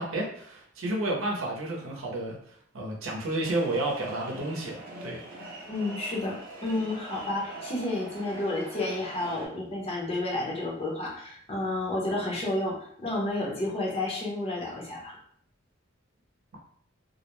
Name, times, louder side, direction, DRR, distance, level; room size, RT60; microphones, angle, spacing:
voice 1, 0.0-5.2, right 1 dB, 85° right, -1 dB, 0.7 m, -31 dB
sound 1, 3.4-9.5, right 1 dB, 45° right, 0.7 m, -43 dB
voice 2, 5.7-6.4 6.6-15.2, left 2 dB, 30° left, -3 dB, 0.7 m, -31 dB
2.4 x 2.0 x 3.0 m, 0.62 s
head